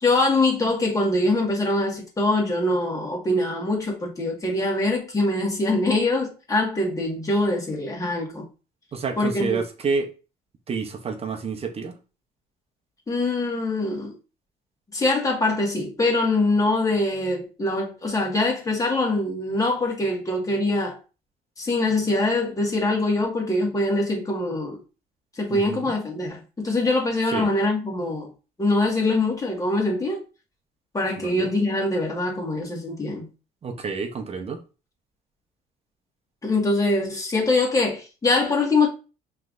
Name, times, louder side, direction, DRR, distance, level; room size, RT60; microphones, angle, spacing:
voice 1, 0.0-8.5 9.2-9.6 13.1-14.2 14.9-21.0 21.6-24.8 25.4-28.3 28.6-30.2 30.9-33.3 36.4-38.9, left 2 dB, 20° left, 1.8 m, -23 dB
voice 2, 8.9-10.1 10.7-12.0 25.5-25.9 27.3-27.5 31.2-31.5 33.6-34.6, right 5 dB, 35° right, 0.9 m, -29 dB
5.6 x 3.3 x 2.6 m
cardioid pair, 110°, 17 cm